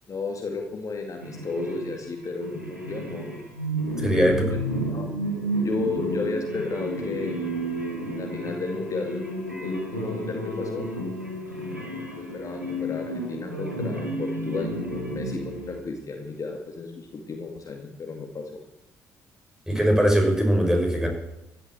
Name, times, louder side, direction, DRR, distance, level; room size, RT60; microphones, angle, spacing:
voice 1, 0.1-3.3 4.2-4.6 4.9-5.1 5.6-7.4 8.1-9.2 9.6-10.9 12.1-18.6, left 3 dB, 40° left, 3 dB, 2.2 m, -33 dB
sound 1, 1.2-15.8, right 1 dB, 90° right, 2.0 m, -31 dB
voice 2, 4.0-4.4 19.7-21.1, equal, 5° right, 2 dB, 6.0 m, -21 dB
15.0 x 11.5 x 7.7 m, 0.89 s
figure-of-eight pair, 45°, 9 cm